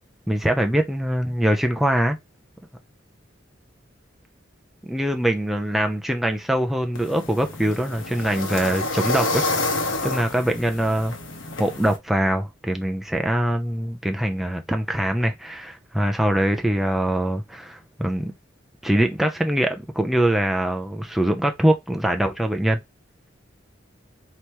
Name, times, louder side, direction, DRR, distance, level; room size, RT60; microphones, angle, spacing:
voice 1, 0.3-2.2 4.8-11.2 11.6-18.3 18.8-22.8, right 1 dB, ahead, 0.4 m, -23 dB
sound 1, 6.9-12.0, left 2 dB, 85° left, 1.0 m, -28 dB
3.3 x 2.9 x 2.9 m
head